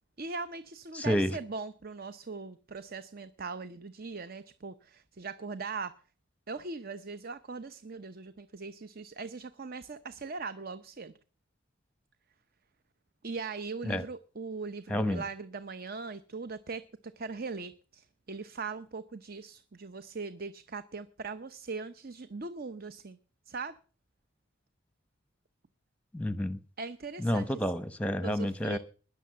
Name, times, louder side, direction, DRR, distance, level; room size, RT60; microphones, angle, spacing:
voice 1, 0.2-5.9 6.5-11.1 13.2-16.8 17.2-23.2 23.5-23.8 26.8-27.6 28.2-28.8, right 4 dB, 50° right, 0.8 m, -40 dB
voice 2, 0.9-1.3 13.9-14.0 14.9-15.2 26.1-26.6 27.2-28.8, left 1 dB, 5° left, 0.8 m, -29 dB
20.5 x 6.9 x 7.6 m
head